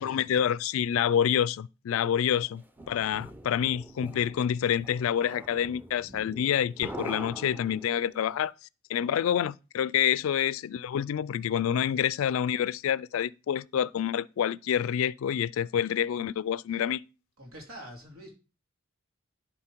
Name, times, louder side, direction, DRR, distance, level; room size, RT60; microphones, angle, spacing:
voice 1, 0.0-8.5 8.9-17.0, left 9 dB, 70° left, 0.3 m, -27 dB
sound 1, 2.3-8.2, right 1 dB, 10° right, 0.6 m, -43 dB
voice 2, 2.8-3.2 16.7-16.8 17.4-18.3, equal, 90° right, 3.0 m, -47 dB
11.0 x 4.2 x 4.5 m
head